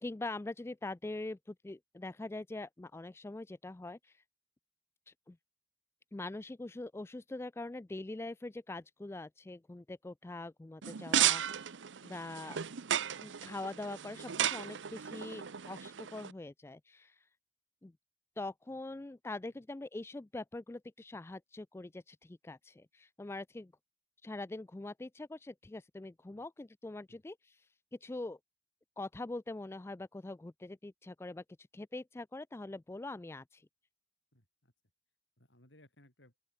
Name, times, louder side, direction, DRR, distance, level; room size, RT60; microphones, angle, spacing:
voice 1, 0.0-4.2 5.1-5.4 6.1-11.7 12.0-12.6 13.2-17.2 17.8-17.9 18.4-23.7 24.2-28.4 29.0-31.4 31.7-33.7, left 2 dB, 15° left, 0.3 m, -43 dB
sound 1, 10.8-16.3, right 10 dB, 75° right, 0.7 m, -34 dB
voice 2, 34.3-34.7 35.4-36.3, left 1 dB, 75° left, 8.0 m, -64 dB
open air
head